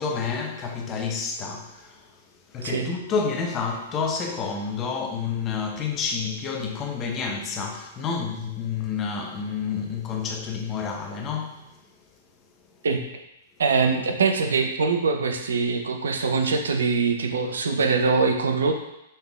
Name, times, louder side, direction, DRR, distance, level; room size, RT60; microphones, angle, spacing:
voice 1, 0.0-2.1 2.5-11.6, left 5 dB, 30° left, 0.6 m, -29 dB
voice 2, 2.6-2.9 12.8-13.0 13.6-18.8, right 4 dB, 75° right, 0.5 m, -23 dB
5.4 x 3.6 x 2.3 m
hypercardioid pair, 115°, 0 cm